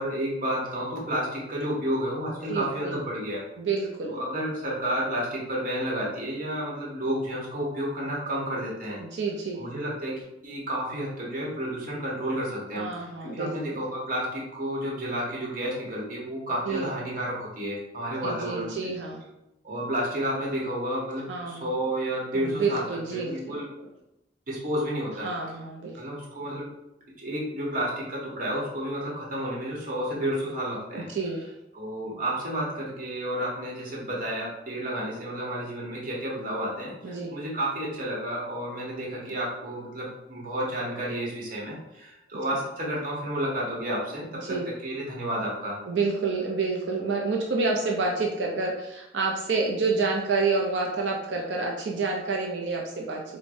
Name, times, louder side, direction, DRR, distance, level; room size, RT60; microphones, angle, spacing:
voice 1, 0.0-3.4 4.1-9.0 9.6-18.9 19.6-22.8 23.1-23.6 24.5-25.3 26.0-26.7 27.2-31.1 31.7-45.8, equal, 50° right, -4 dB, 1.0 m, -31 dB
voice 2, 2.5-3.0 3.6-4.2 9.0-9.6 12.8-13.8 16.7-16.9 18.2-19.2 21.3-21.6 22.3-23.9 25.2-26.0 30.9-31.5 37.0-37.3 44.4-44.7 45.9-53.2, right 4 dB, 75° right, -1 dB, 0.4 m, -28 dB
4.7 x 2.1 x 2.6 m, 0.88 s
head